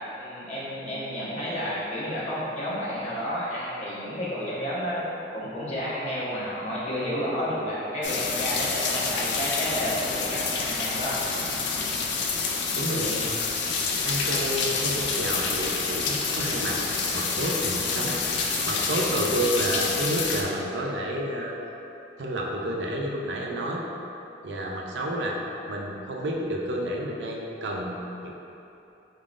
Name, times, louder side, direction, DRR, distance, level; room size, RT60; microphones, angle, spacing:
voice 1, 0.1-5.0 5.3-11.2, equal, 40° left, -9 dB, 0.9 m, -31 dB
sound 1, 8.0-20.4, left 4 dB, 80° left, 0.4 m, -28 dB
voice 2, 12.7-13.2 14.0-21.5 22.2-23.8 24.4-25.4 25.7-28.3, right 1 dB, 75° right, -1 dB, 0.5 m, -30 dB
4.0 x 3.7 x 2.5 m, 2.9 s
head